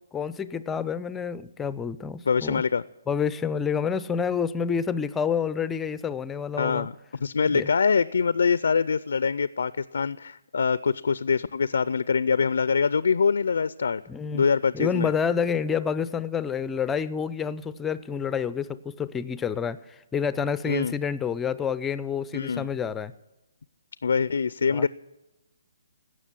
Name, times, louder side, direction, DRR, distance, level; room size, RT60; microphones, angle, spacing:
voice 1, 0.1-2.6 3.1-6.9 7.5-7.7 14.1-14.4 14.7-23.1 24.7-24.9, left 6 dB, 10° left, 15 dB, 0.4 m, -28 dB
voice 2, 2.3-2.8 6.6-6.9 7.2-14.0 14.3-15.1 20.7-20.9 22.3-22.7 24.0-24.9, left 5 dB, 70° left, 17 dB, 0.4 m, -24 dB
17.0 x 6.3 x 10.0 m, 1.0 s
hypercardioid pair, 145°, 0 cm